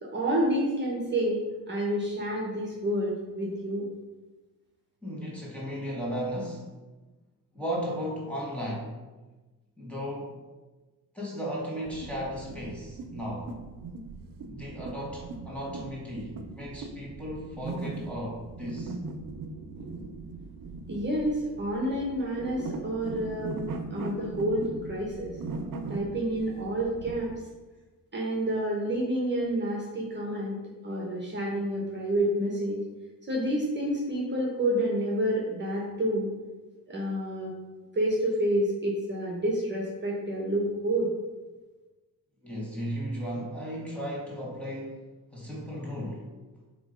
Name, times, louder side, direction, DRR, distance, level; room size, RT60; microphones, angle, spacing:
voice 1, 0.0-3.9 20.9-25.4 25.9-27.3 28.1-32.8 33.3-36.3 36.9-37.5 37.9-41.1, right 1 dB, 30° right, -3 dB, 1.5 m, -29 dB
voice 2, 5.0-6.7 7.5-8.9 9.8-10.5 11.1-13.6 14.5-19.0 42.4-45.0 45.3-46.3, equal, 5° left, -5 dB, 2.2 m, -35 dB
sound 1, 11.8-27.4, right 3 dB, 70° right, 0.8 m, -39 dB
7.9 x 3.3 x 5.3 m, 1.2 s
cardioid pair, 110°, 34 cm